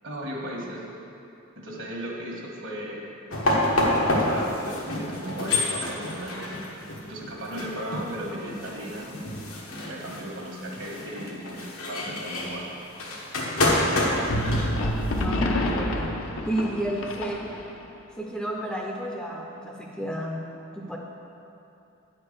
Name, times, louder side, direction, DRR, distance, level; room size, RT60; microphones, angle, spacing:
voice 1, 0.0-0.8 1.6-3.2 3.8-6.6 7.0-9.1 9.8-12.7, right 1 dB, 65° right, -2 dB, 1.4 m, -36 dB
sound 1, 3.3-15.2, left 1 dB, 90° left, 1.4 m, -28 dB
voice 2, 13.8-14.3 15.1-16.2 16.4-17.5 18.2-20.5 20.7-21.0, right 1 dB, 5° left, -1 dB, 0.5 m, -32 dB
sound 2, 14.3-17.8, left 1 dB, 75° left, 0.7 m, -27 dB
9.4 x 4.5 x 6.6 m, 2.8 s
head